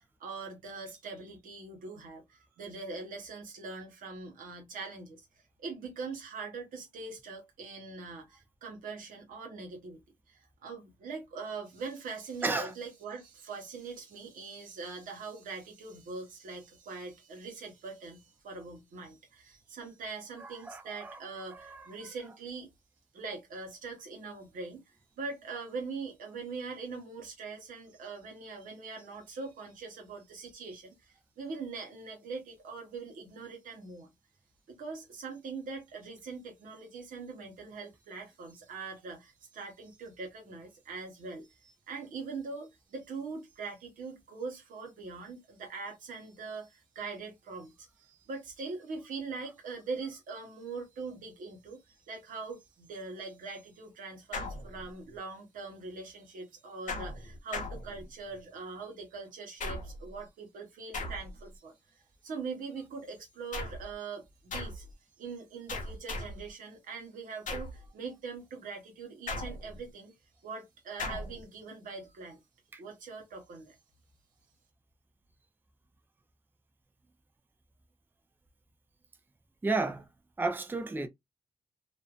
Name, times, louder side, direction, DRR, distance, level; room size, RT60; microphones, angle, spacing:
voice 1, 0.0-5.2 5.6-10.0 10.3-22.7 23.1-34.1 34.7-61.7 62.2-64.9 65.2-70.1 70.4-72.4 72.8-73.8, right 4 dB, 85° right, 1.0 m, -42 dB
voice 2, 12.4-12.7 20.4-21.2 21.5-22.0 72.7-72.8 79.6-80.1 80.4-81.1, right 3 dB, 15° right, 0.4 m, -33 dB
sound 1, 54.3-55.2 56.9-58.4 59.6-60.2 60.9-61.6 63.5-63.9 64.5-64.9 65.7-66.5 67.5-67.9 69.3-69.9 71.0-71.4, left 2 dB, 70° left, 0.8 m, -38 dB
2.5 x 2.1 x 2.3 m
cardioid pair, 55°, 14 cm